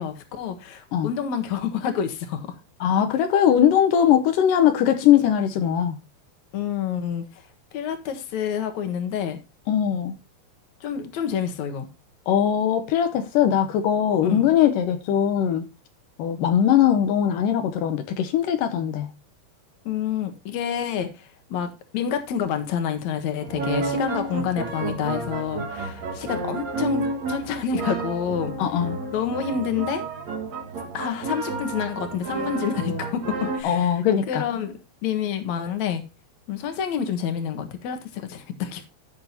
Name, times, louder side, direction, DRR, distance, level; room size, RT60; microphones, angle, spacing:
voice 1, 0.0-2.5 6.5-7.2 7.7-9.4 10.8-11.9 14.2-14.5 19.9-28.5 29.1-30.0 30.9-34.0 34.3-36.0 36.5-38.9, left 8 dB, 60° left, 2.0 m, -28 dB
voice 2, 2.8-6.0 9.7-10.2 12.3-15.7 16.2-19.1 28.6-29.0 33.6-34.4, left 9 dB, 90° left, 1.9 m, -20 dB
sound 1, 23.4-33.6, right 3 dB, 50° right, 2.5 m, -30 dB
15.0 x 6.9 x 2.9 m
omnidirectional pair, 5.1 m